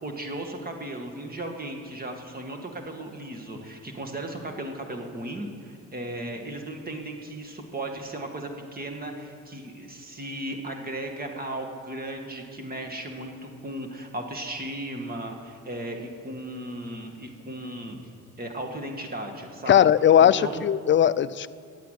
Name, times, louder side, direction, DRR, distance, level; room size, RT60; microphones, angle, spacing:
voice 1, 0.0-18.0 18.4-19.8 20.2-20.6, right 1 dB, 30° right, 3 dB, 1.9 m, -36 dB
voice 2, 19.7-21.5, left 10 dB, 40° left, 16 dB, 0.4 m, -18 dB
11.5 x 8.3 x 9.3 m, 2.3 s
cardioid pair, 90°, 30 cm